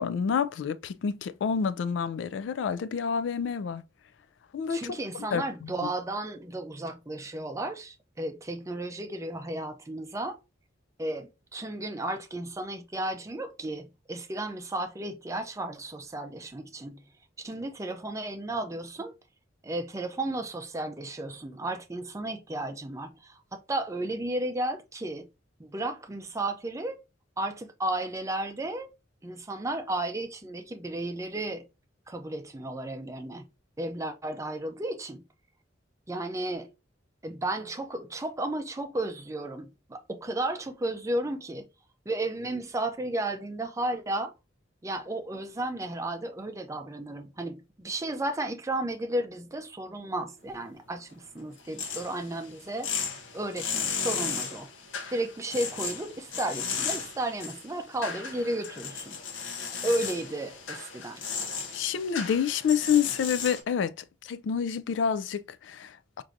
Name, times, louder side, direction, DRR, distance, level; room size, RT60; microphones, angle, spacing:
voice 1, 0.0-3.8 4.5-4.8 5.3-5.7 61.7-63.9 64.2-66.2, left 7 dB, 70° left, 0.3 m, -28 dB
voice 2, 4.7-10.4 11.0-17.0 17.4-19.1 19.6-25.3 25.6-27.0 27.4-28.9 29.2-31.6 32.1-33.4 33.8-35.2 36.1-36.7 37.2-41.7 42.1-44.3 44.8-52.9 53.3-54.7 55.1-59.2 59.8-61.2, right 1 dB, 15° right, 0.4 m, -33 dB
sound 1, 51.6-63.6, left 6 dB, 90° left, 0.7 m, -35 dB
4.5 x 2.6 x 2.5 m
head